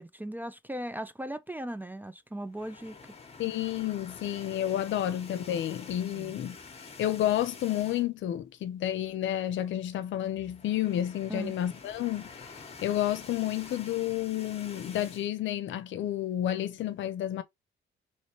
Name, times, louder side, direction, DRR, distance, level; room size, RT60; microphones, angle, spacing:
voice 1, 0.0-3.0 6.2-6.3 11.3-11.5, right 1 dB, 10° right, 0.4 m, -38 dB
sound 1, 2.5-8.3 8.7-8.8 9.1-9.2 10.2-15.3, left 4 dB, 30° left, 1.0 m, -48 dB
voice 2, 3.4-6.6 7.0-12.5 12.8-17.4, left 12 dB, 70° left, 0.6 m, -30 dB
3.1 x 3.1 x 3.0 m
cardioid pair, 90°, 20 cm